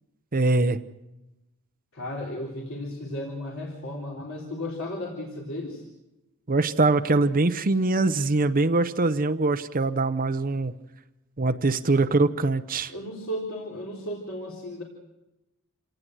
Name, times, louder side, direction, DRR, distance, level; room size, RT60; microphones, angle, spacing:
voice 1, 0.3-0.8 6.5-10.7 11.4-12.9, right 3 dB, 40° right, 9 dB, 0.8 m, -23 dB
voice 2, 1.9-5.9 12.9-14.8, left 1 dB, 65° left, -2 dB, 3.8 m, -34 dB
28.0 x 18.0 x 7.8 m, 0.99 s
head